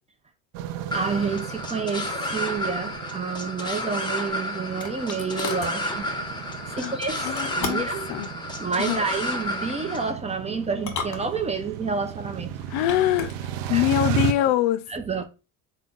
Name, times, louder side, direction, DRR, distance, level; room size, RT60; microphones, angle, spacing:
sound 1, 0.5-14.3, right 9 dB, 85° right, 0.5 m, -35 dB
sound 2, 0.9-10.1, left 1 dB, 10° left, 0.8 m, -31 dB
voice 1, 0.9-6.1 6.8-8.1 8.6-12.5 13.7-13.9 14.4-14.5 14.9-15.2, right 5 dB, 15° right, 0.5 m, -29 dB
sound 3, 4.0-5.8 7.2-8.0 9.4-9.8 10.7-11.8 12.6-13.4, left 5 dB, 45° left, 1.2 m, -35 dB
voice 2, 7.2-8.3 8.8-9.0 12.7-13.3 13.7-14.9, left 13 dB, 80° left, 0.5 m, -24 dB
3.5 x 2.2 x 3.8 m
supercardioid pair, 90°, 39 cm